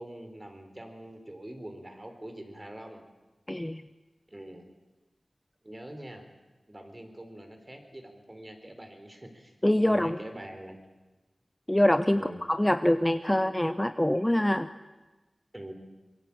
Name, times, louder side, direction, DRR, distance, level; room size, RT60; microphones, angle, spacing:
voice 1, 0.0-3.0 4.3-4.7 5.6-6.3 6.7-9.6 9.8-10.8 12.1-12.4 15.5-15.7, right 1 dB, 20° right, 6 dB, 4.2 m, -44 dB
voice 2, 3.5-3.8 9.6-10.2 11.7-12.2 12.5-14.7, left 1 dB, 10° left, 10 dB, 0.8 m, -24 dB
25.0 x 22.5 x 8.7 m, 1.2 s
wide cardioid pair, 80°, 0 cm